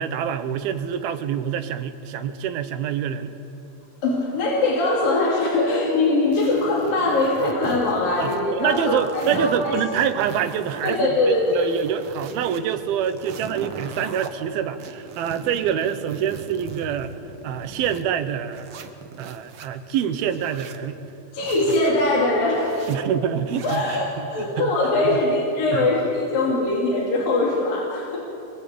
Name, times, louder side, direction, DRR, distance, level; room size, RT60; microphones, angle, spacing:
voice 1, 0.0-3.3 8.2-17.1 17.4-18.7 19.2-21.0 22.9-24.0 24.4-24.7 25.0-25.2 25.7-25.9, right 8 dB, 80° right, 10 dB, 3.1 m, -26 dB
voice 2, 4.0-9.7 10.8-11.7 21.3-22.7 23.6-28.2, left 2 dB, 65° left, -4 dB, 5.0 m, -22 dB
sound 1, 6.3-8.4 8.7-11.0 11.4-12.6 13.0-14.3 14.8-18.0 18.5-19.7 20.2-20.8 21.4-21.9 22.5-23.0 23.5-24.0, right 5 dB, 60° right, 1.4 m, -39 dB
26.0 x 21.5 x 8.7 m, 2.8 s
omnidirectional pair, 4.3 m